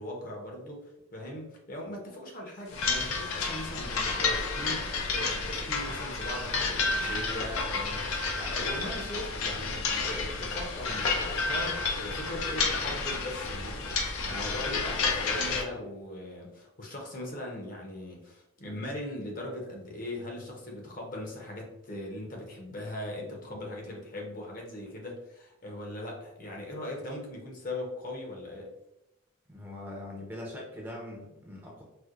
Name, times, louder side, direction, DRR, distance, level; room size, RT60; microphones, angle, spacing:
voice 1, 0.0-28.7, left 1 dB, 40° left, 0 dB, 0.7 m, -39 dB
sound 1, 2.7-15.6, left 4 dB, 85° left, 0.5 m, -31 dB
voice 2, 29.5-31.8, left 1 dB, 10° right, -2 dB, 0.5 m, -42 dB
4.3 x 2.1 x 2.4 m, 0.88 s
head